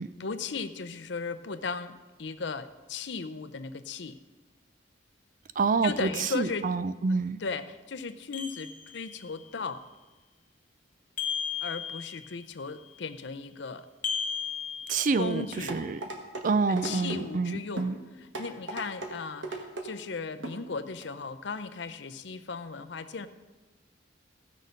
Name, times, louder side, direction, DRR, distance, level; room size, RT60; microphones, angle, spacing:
voice 1, 0.2-4.1 5.8-6.7 7.4-9.8 11.6-13.9 15.2-15.8 16.7-23.3, left 4 dB, 65° left, 12 dB, 0.6 m, -36 dB
voice 2, 5.6-6.1 6.3-7.4 14.9-15.4 15.7-16.0 16.4-18.0, right 4 dB, 40° right, 14 dB, 0.4 m, -27 dB
sound 1, 8.3-9.3 11.2-12.4 14.0-15.5, left 7 dB, 45° left, 1.1 m, -35 dB
sound 2, 15.7-16.5 16.8-17.2 17.8-17.9 18.3-19.1 19.4-19.9 20.4-20.6 21.0-21.1, right 2 dB, 70° right, 1.6 m, -36 dB
15.5 x 6.5 x 5.2 m, 1.2 s
head